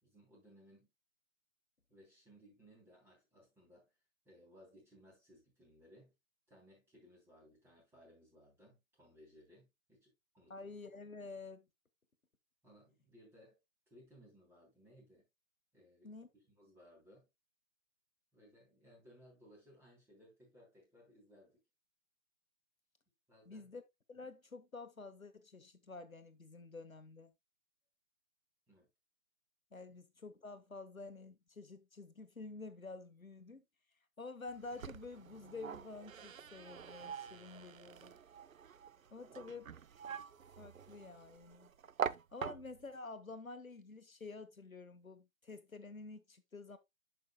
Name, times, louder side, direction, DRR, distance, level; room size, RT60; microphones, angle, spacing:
voice 1, 0.0-0.9 1.9-3.9 4.2-6.1 6.5-10.8 12.6-13.6 13.9-15.3 15.7-16.1 16.4-17.3 18.3-21.6 23.3-23.7 28.7-28.9 29.9-30.0, equal, 5° right, 3.1 m, -63 dB
voice 2, 10.5-11.7 16.0-16.3 23.5-23.8 24.1-27.3 29.7-33.6 34.2-38.1 39.1-39.7 40.6-41.7 42.3-46.8, left 3 dB, 90° left, 1.2 m, -49 dB
sound 1, 34.5-43.0, right 7 dB, 80° right, 0.6 m, -45 dB
10.5 x 5.8 x 2.2 m
figure-of-eight pair, 140°, 40 cm